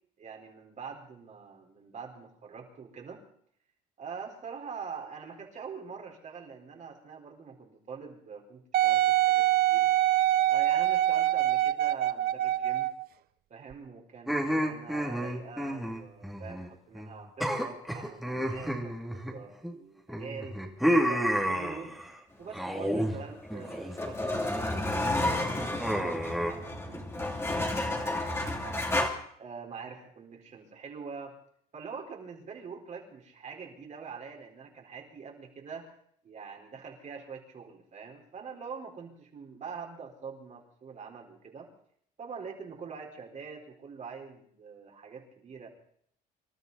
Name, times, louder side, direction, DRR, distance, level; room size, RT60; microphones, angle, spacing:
voice 1, 0.2-3.2 4.0-9.9 10.5-12.9 13.5-20.6 21.0-21.9 22.4-28.9 29.4-31.4 31.7-35.9 36.2-41.7 42.2-45.7, right 5 dB, 45° right, 1 dB, 4.4 m, -45 dB
Wind instrument woodwind instrument, 8.7-13.0 13.7-13.8, right 14 dB, 65° right, 0.7 m, -24 dB
sound 1, 14.3-16.7 16.9-17.1 17.4-19.7 20.1-22.1 22.5-23.2 23.5-24.0 24.4-24.8 25.8-26.5, equal, ahead, 2.7 m, -30 dB
sound 2, 23.2-29.1, left 1 dB, 15° left, 2.9 m, -31 dB
26.0 x 12.5 x 4.1 m, 0.64 s
cardioid pair, 110°, 17 cm